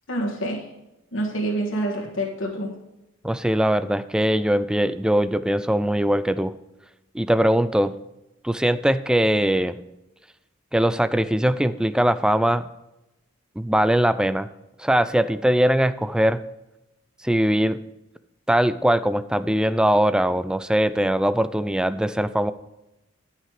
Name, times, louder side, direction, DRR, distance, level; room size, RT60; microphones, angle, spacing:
voice 1, 0.1-0.7 1.1-2.7, right 1 dB, 65° left, -3 dB, 1.7 m, -27 dB
voice 2, 3.2-6.5 7.1-7.9 8.4-9.8 10.7-12.7 13.6-14.5 14.8-16.4 17.2-17.8 18.5-22.5, right 1 dB, 5° right, 14 dB, 0.3 m, -21 dB
12.5 x 5.7 x 4.9 m, 0.95 s
head